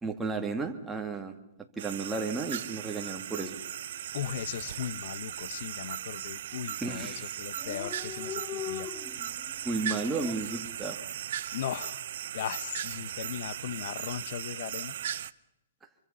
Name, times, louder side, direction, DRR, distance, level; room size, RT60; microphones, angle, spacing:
voice 1, 0.0-1.3 1.8-3.6 6.8-7.4 9.6-11.0, right 3 dB, 10° right, 3 dB, 2.2 m, -33 dB
sound 1, 1.8-15.3, right 10 dB, 60° right, 0.8 m, -38 dB
voice 2, 4.1-8.9 11.5-12.0 12.3-14.9, left 10 dB, 55° left, 17 dB, 1.1 m, -37 dB
Dog, 4.1-4.4 4.7-4.8 5.0-5.7 6.3-6.6 6.9-7.0 7.1-7.2 7.4-10.3, left 9 dB, 15° left, 1.0 m, -41 dB
25.5 x 24.0 x 5.7 m, 0.86 s
hypercardioid pair, 150°, 0 cm